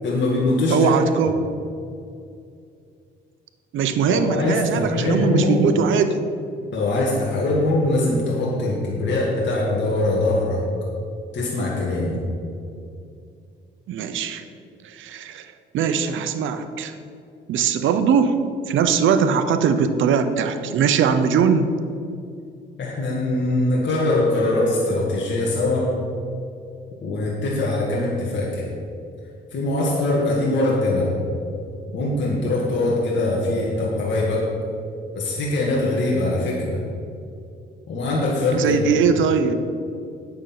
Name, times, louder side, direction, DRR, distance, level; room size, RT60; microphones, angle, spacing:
voice 1, 0.0-0.9 4.1-5.6 6.7-10.6 11.3-12.2 22.8-26.0 27.0-28.7 29.5-31.1 31.9-34.5 35.1-36.8 37.9-38.8, left 2 dB, 65° left, -4 dB, 2.1 m, -22 dB
voice 2, 0.7-1.3 3.7-6.2 13.9-14.4 14.8-17.0 17.5-18.4 18.7-21.8 38.5-39.5, right 6 dB, 80° right, 9 dB, 0.8 m, -21 dB
9.1 x 6.9 x 5.9 m, 2.5 s
cardioid pair, 90°, 20 cm